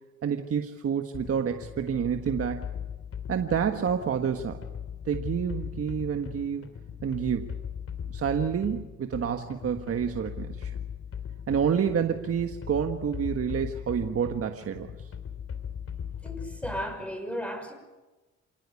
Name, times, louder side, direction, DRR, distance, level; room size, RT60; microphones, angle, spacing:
voice 1, 0.2-2.7 3.3-4.6 5.0-6.7 7.0-7.5 8.1-10.7 11.5-15.1, right 7 dB, 50° right, 6 dB, 1.5 m, -28 dB
sound 1, 1.1-17.1, left 8 dB, 50° left, 2.8 m, -39 dB
voice 2, 16.2-17.7, equal, 5° left, 7 dB, 5.7 m, -35 dB
26.5 x 18.5 x 8.4 m, 1.1 s
cardioid pair, 90°, 30 cm